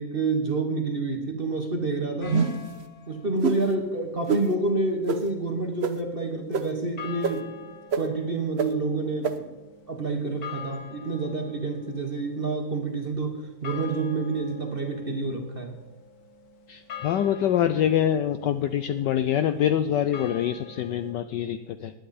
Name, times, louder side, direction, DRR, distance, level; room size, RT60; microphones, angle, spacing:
voice 1, 0.0-2.4 3.1-7.6 7.9-9.5 9.9-15.7, right 3 dB, 35° right, 4 dB, 1.1 m, -28 dB
sound 1, 2.2-3.3 7.0-21.1, left 6 dB, 50° left, 1.7 m, -45 dB
sound 2, 2.3-2.7 3.4-3.6 4.3-4.4 5.1-5.2 5.8-5.9 6.5-6.6 7.2-7.3 7.9-8.0 8.6-8.7 9.2-9.3, right 6 dB, 75° right, 0.5 m, -24 dB
voice 2, 16.7-21.9, left 10 dB, 75° left, 11 dB, 1.0 m, -25 dB
19.5 x 9.8 x 4.2 m, 1.1 s
omnidirectional pair, 2.3 m